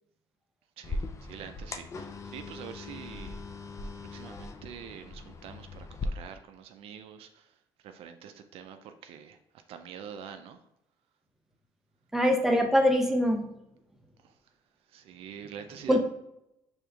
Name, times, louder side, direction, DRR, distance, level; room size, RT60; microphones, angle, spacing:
sound 1, 0.8-6.1, left 3 dB, 30° left, 0.4 m, -40 dB
voice 1, 0.8-3.4 4.0-7.5 7.8-9.4 9.7-10.6 14.2-14.3 14.9-16.0, right 8 dB, 70° right, 7 dB, 0.4 m, -45 dB
voice 2, 12.1-13.4 15.9-16.0, equal, 5° right, 2 dB, 0.7 m, -23 dB
5.0 x 3.4 x 2.3 m, 0.83 s
supercardioid pair, 80°, 10 cm